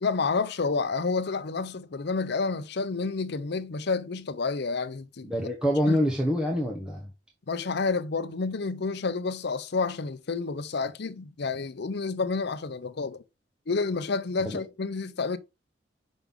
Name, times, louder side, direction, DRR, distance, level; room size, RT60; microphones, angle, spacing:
voice 1, 0.0-5.3 5.9-6.0 7.5-13.2 13.7-15.4, left 4 dB, 60° left, 0.6 m, -29 dB
voice 2, 5.2-7.1 14.4-14.6, equal, 5° right, 0.9 m, -26 dB
5.9 x 5.4 x 3.6 m
head